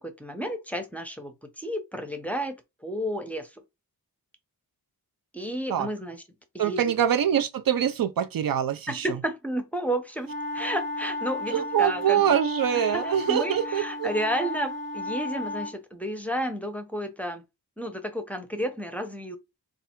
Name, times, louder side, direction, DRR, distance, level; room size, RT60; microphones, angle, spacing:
voice 1, 0.0-3.6 5.3-6.2 6.5-7.0 8.9-12.4 12.9-17.4 17.8-19.4, equal, 5° left, 0.7 m, -32 dB
voice 2, 6.6-9.1 11.5-14.1, right 9 dB, 65° right, 0.5 m, -24 dB
sound 1, 10.2-15.8, left 2 dB, 30° right, 0.7 m, -33 dB
3.3 x 2.4 x 4.3 m
wide cardioid pair, 130°, 38 cm